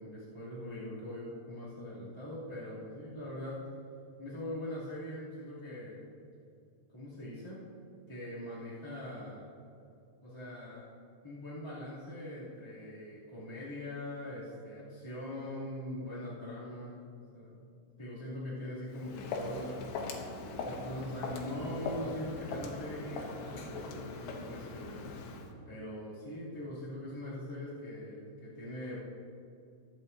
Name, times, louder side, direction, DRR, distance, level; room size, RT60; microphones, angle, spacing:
voice 1, 0.0-3.6 4.2-6.0 6.9-7.6 8.1-9.5 10.2-10.9 11.2-17.6 18.0-19.9 20.6-25.0 25.6-29.0, left 1 dB, 10° left, -11 dB, 1.8 m, -42 dB
Walk footsteps, 18.9-25.5, left 3 dB, 85° left, 3.1 m, -41 dB
22.0 x 7.4 x 2.7 m, 2.5 s
omnidirectional pair, 4.8 m